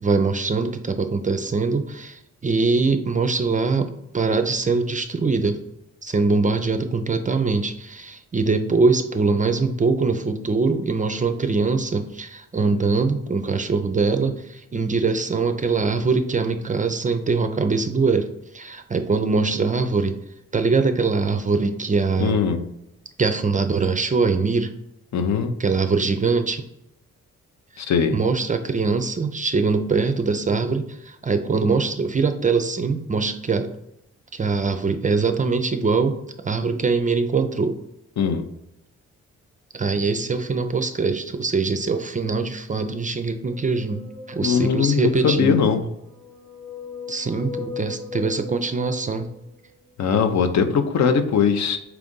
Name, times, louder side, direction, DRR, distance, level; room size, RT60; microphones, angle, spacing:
voice 1, 0.0-5.6 6.0-20.1 20.5-22.4 23.2-24.7 25.6-26.6 28.1-33.7 34.3-36.2 36.4-37.8 39.7-45.6 47.1-49.3, right 4 dB, 25° right, 8 dB, 0.4 m, -22 dB
voice 2, 22.2-22.6 25.1-25.5 27.8-28.1 38.2-38.4 44.4-45.8 50.0-51.8, left 6 dB, 60° left, 7 dB, 0.6 m, -20 dB
sound 1, 43.5-45.1 45.9-49.8, left 4 dB, 5° left, 1.0 m, -38 dB
4.6 x 2.5 x 3.7 m, 0.84 s
supercardioid pair, 50°, 32 cm